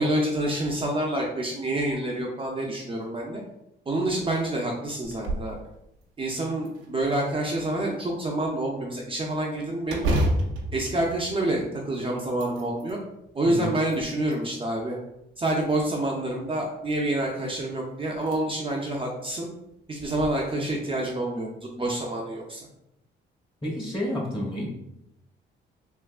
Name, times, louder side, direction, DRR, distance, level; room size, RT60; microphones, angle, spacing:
voice 1, 0.0-3.4 3.9-5.6 6.2-10.2 10.7-13.0 13.3-15.0 15.4-19.5 19.9-22.7, right 1 dB, 25° right, -2 dB, 0.5 m, -27 dB
sound 1, 5.0-5.6 6.0-6.1 6.6-7.5 9.9-11.9 12.3-13.0 13.6-14.5 15.4-16.1 17.5-17.6 18.1-18.4 18.8-18.9 20.0-20.3, right 1 dB, 90° right, 0.6 m, -30 dB
voice 2, 23.6-24.7, left 1 dB, 25° left, -1 dB, 1.4 m, -30 dB
3.5 x 2.8 x 2.4 m, 0.82 s
cardioid pair, 90°, 20 cm